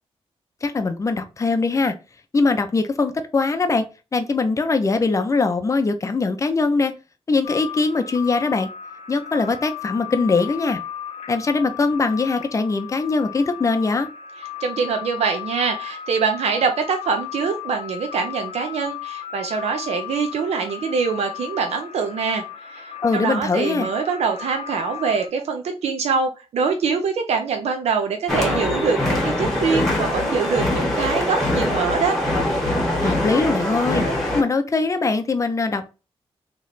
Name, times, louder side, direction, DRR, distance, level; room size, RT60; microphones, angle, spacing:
voice 1, 0.6-1.9 2.3-3.9 4.1-6.9 7.3-8.7 9.1-10.8 11.3-14.1 23.0-23.9 33.0-34.0 34.3-35.9, left 3 dB, 30° left, 0.5 m, -21 dB
sound 1, 7.4-25.3, left 11 dB, 90° left, 0.6 m, -35 dB
voice 2, 14.6-22.4 22.7-32.2, right 5 dB, 90° right, 0.6 m, -24 dB
sound 2, 28.3-34.4, left 1 dB, 5° left, 1.3 m, -23 dB
3.2 x 3.0 x 4.0 m
wide cardioid pair, 140°, 11 cm